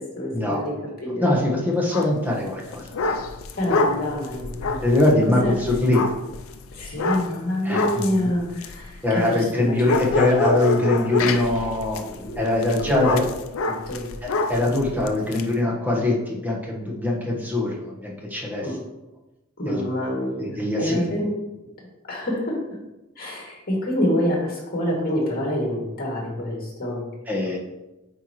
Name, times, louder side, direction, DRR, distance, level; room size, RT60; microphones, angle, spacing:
voice 1, 0.0-1.3 3.6-4.8 5.4-5.5 6.8-9.9 12.0-13.3 13.6-14.1 18.6-18.8 19.6-21.3 22.1-22.6 23.2-27.1, left 1 dB, 50° left, -2 dB, 2.2 m, -27 dB
voice 2, 1.2-3.2 4.8-6.0 7.6-8.0 9.0-12.0 12.4-13.2 14.2-18.7 19.6-19.8 20.4-21.0 27.3-27.6, left 2 dB, 10° right, -3 dB, 1.3 m, -22 dB
sound 1, 1.9-2.2 2.6-9.5 9.8-15.4, left 3 dB, 80° left, 0.5 m, -27 dB
8.4 x 4.6 x 3.0 m, 1.0 s
head